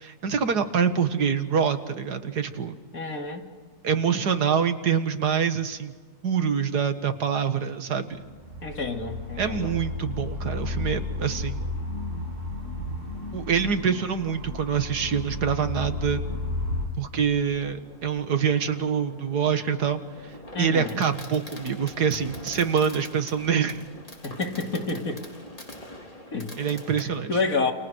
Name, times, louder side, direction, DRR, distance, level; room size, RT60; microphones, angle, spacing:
voice 1, 0.0-2.7 3.8-5.9 6.2-8.2 9.4-11.6 13.3-16.2 17.0-20.0 20.6-23.8 26.6-27.4, right 7 dB, 85° right, 9 dB, 2.2 m, -25 dB
voice 2, 2.9-3.5 8.6-9.7 20.5-21.0 24.2-25.2 26.3-26.5 26.9-27.7, left 3 dB, 60° left, 3 dB, 3.0 m, -29 dB
sound 1, 8.1-16.9, left 2 dB, 50° right, 6.7 m, -33 dB
Fireworks, 17.5-27.0, left 1 dB, 20° left, 3.9 m, -44 dB
29.5 x 28.0 x 6.4 m, 1.5 s
omnidirectional pair, 1.7 m